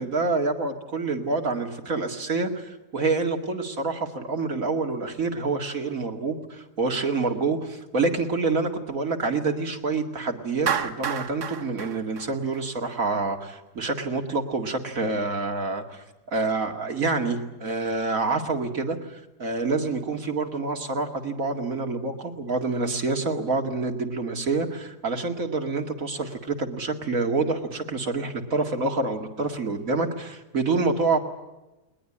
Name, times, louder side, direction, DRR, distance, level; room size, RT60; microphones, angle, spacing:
voice 1, 0.0-31.2, right 3 dB, 55° right, 4 dB, 2.6 m, -27 dB
Clapping, 10.7-13.0, right 8 dB, 80° right, 1.8 m, -30 dB
21.0 x 20.5 x 9.9 m, 1.0 s
omnidirectional pair, 1.7 m